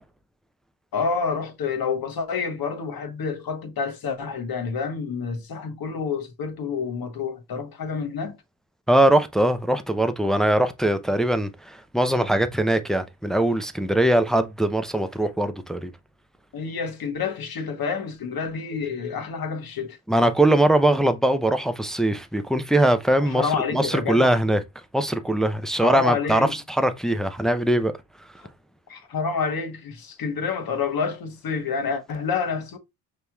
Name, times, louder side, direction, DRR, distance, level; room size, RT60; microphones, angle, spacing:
voice 1, 0.9-8.4 16.5-20.0 23.2-24.4 25.8-26.6 28.9-32.8, left 5 dB, 50° left, 1.2 m, -28 dB
voice 2, 8.9-15.9 20.1-23.5 23.7-24.6 24.9-27.9, right 1 dB, ahead, 0.5 m, -21 dB
5.1 x 3.0 x 2.3 m
supercardioid pair, 65°, 45 cm